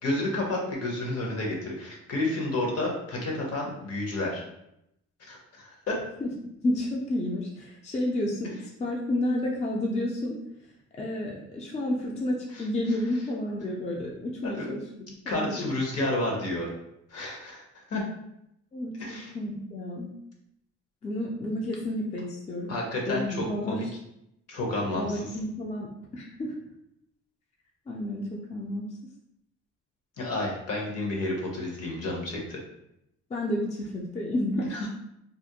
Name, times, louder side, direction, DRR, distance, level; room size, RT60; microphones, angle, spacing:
voice 1, 0.0-4.4 5.2-6.0 12.5-12.7 14.4-14.7 15.3-16.7 17.1-18.0 19.0-19.3 22.7-23.9 24.5-25.3 30.2-32.6 34.7-34.9, left 2 dB, 55° left, 0 dB, 0.8 m, -31 dB
voice 2, 6.6-10.3 11.0-15.7 18.7-20.1 21.0-22.8 23.1-23.8 24.9-26.5 27.9-28.9 33.3-34.9, left 1 dB, 25° left, -2 dB, 0.4 m, -31 dB
2.4 x 2.1 x 2.7 m, 0.81 s
cardioid pair, 90°, 30 cm